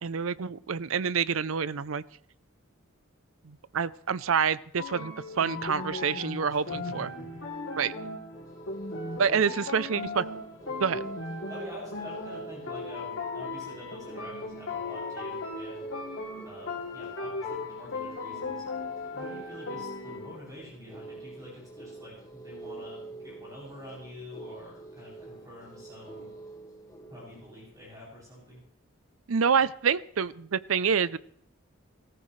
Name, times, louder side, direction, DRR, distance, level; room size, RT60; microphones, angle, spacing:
voice 1, 0.0-2.0 3.4-7.1 7.8-7.9 9.2-10.2 10.8-11.0 29.3-31.2, right 6 dB, 90° right, 17 dB, 0.6 m, -27 dB
sound 1, 4.8-20.4, left 3 dB, 80° left, 3.0 m, -37 dB
voice 2, 6.4-7.4 9.3-9.6 10.7-10.9 11.5-15.9 16.4-18.7 19.0-26.3 27.1-28.6, left 1 dB, 15° right, -5 dB, 7.6 m, -46 dB
sound 2, 8.3-27.8, right 3 dB, 15° left, 1.4 m, -46 dB
22.0 x 14.5 x 3.2 m, 0.63 s
head